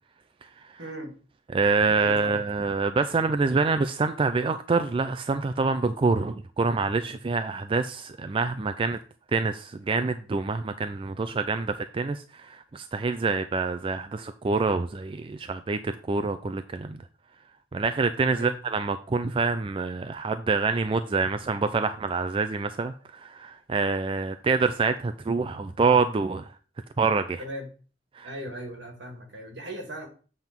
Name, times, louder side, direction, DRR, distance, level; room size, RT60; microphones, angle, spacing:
voice 1, 0.8-1.1 1.9-2.4 18.3-18.6 27.4-27.7 28.2-30.1, equal, 70° right, 2.0 m, -38 dB
voice 2, 1.5-9.0 9.3-17.0 17.7-26.5 27.0-27.4 28.1-28.3, right 4 dB, 30° right, 0.4 m, -26 dB
7.7 x 3.6 x 5.9 m
head